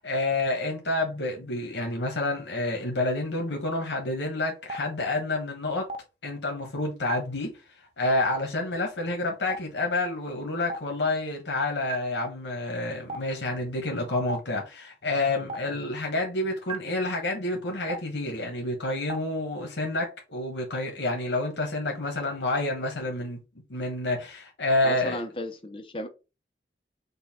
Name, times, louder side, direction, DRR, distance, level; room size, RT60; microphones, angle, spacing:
voice 1, 0.0-5.9 6.2-7.5 8.0-23.4 23.7-25.2, left 2 dB, 80° left, 1.1 m, -29 dB
Stream, 4.7-4.8 5.9-6.0 7.1-7.2 8.3-8.4 9.5-9.6 10.7-10.8 11.9-12.0 13.1-13.2 14.3-14.4 15.5-15.6 16.7-16.8 17.9-18.0 19.1-19.2, right 4 dB, 30° right, 0.5 m, -32 dB
voice 2, 24.8-26.1, left 1 dB, 30° left, 0.5 m, -34 dB
5.4 x 2.2 x 4.2 m
head